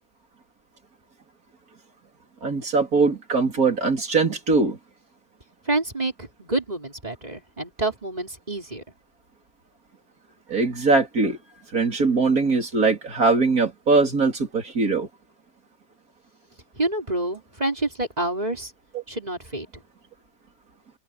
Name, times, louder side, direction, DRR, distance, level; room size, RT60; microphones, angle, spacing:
voice 1, 2.4-4.8 10.5-11.4 11.7-15.1 18.9-19.0, right 3 dB, 60° right, 4.0 m, -21 dB
voice 2, 5.7-8.8 16.8-18.7 19.1-19.7, right 2 dB, 25° right, 4.5 m, -28 dB
open air
omnidirectional pair, 1.8 m